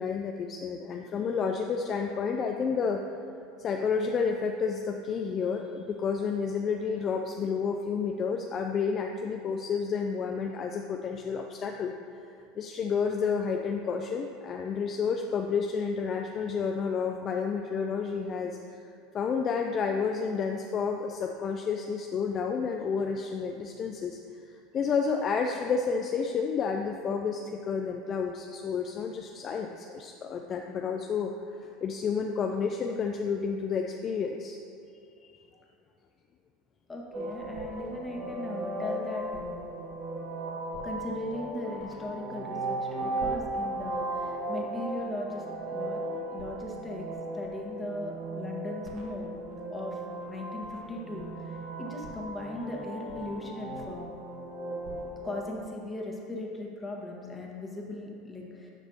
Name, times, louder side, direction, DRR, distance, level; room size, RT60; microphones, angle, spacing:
voice 1, 0.0-3.0 3.6-11.9 12.6-18.8 19.1-24.2 24.7-34.6 35.2-35.3, left 5 dB, 40° left, 3 dB, 0.4 m, -30 dB
voice 2, 36.9-39.6 40.8-46.0 46.3-47.1 47.3-49.3 49.7-50.0 50.3-54.1 55.2-58.7, left 1 dB, 15° left, -1 dB, 1.5 m, -38 dB
sound 1, 37.1-55.4, right 2 dB, 60° right, 1.5 m, -36 dB
10.5 x 6.0 x 2.9 m, 2.6 s
hypercardioid pair, 80°, 0 cm